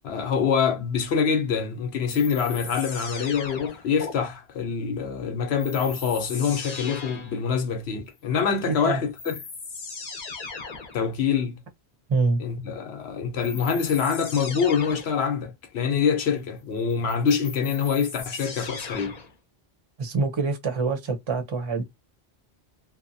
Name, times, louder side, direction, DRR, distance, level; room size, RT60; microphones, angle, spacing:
voice 1, 0.0-9.4 10.9-11.6 12.4-19.2, left 6 dB, 90° left, 1.0 m, -25 dB
sound 1, 2.1-4.1 5.6-7.4 8.7-8.8 9.2-11.0 13.4-15.2 16.9-19.3, left 4 dB, 45° left, 0.7 m, -38 dB
voice 2, 8.7-9.0 12.1-12.4 20.0-21.8, right 4 dB, 35° right, 0.6 m, -25 dB
2.7 x 2.1 x 2.6 m
omnidirectional pair, 1.0 m